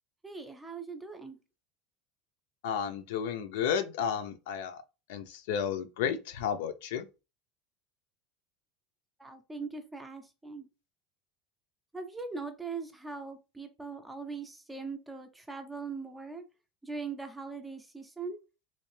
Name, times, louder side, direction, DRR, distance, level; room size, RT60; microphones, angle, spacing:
voice 1, 0.2-1.4 9.2-10.7 11.9-16.4 16.8-18.4, right 4 dB, 5° right, 0.5 m, -41 dB
voice 2, 2.6-4.8 5.1-7.1, left 8 dB, 85° left, 0.6 m, -32 dB
3.2 x 2.8 x 3.2 m
cardioid pair, 170°, 0 cm